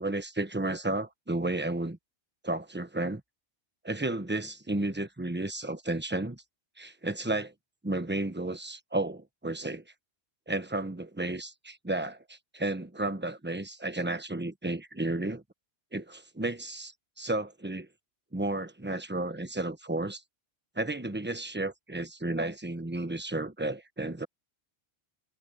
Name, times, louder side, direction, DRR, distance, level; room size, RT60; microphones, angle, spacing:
voice 1, 0.0-2.0 2.4-3.2 3.8-6.4 6.8-7.5 7.8-9.8 10.5-15.4 15.9-17.9 18.3-20.2 20.8-24.3, right 2 dB, 10° right, 1.1 m, -32 dB
omnidirectional pair, 1.1 m